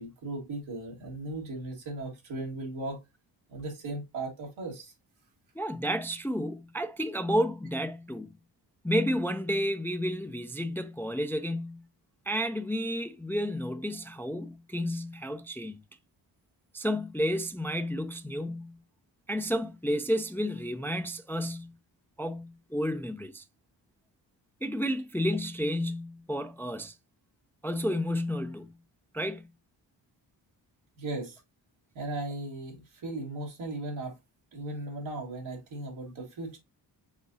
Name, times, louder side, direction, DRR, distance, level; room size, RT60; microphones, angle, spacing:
voice 1, 0.0-3.0 3.5-4.9 31.0-31.4 31.9-34.2 34.5-36.6, right 2 dB, 90° right, 1.9 m, -37 dB
voice 2, 5.6-8.3 8.8-11.9 12.3-15.8 16.7-18.8 19.3-21.8 22.2-23.4 24.6-27.0 27.6-28.8 29.1-29.5, equal, 5° left, 0.3 m, -31 dB
4.9 x 3.6 x 2.6 m
cardioid pair, 55°, 45 cm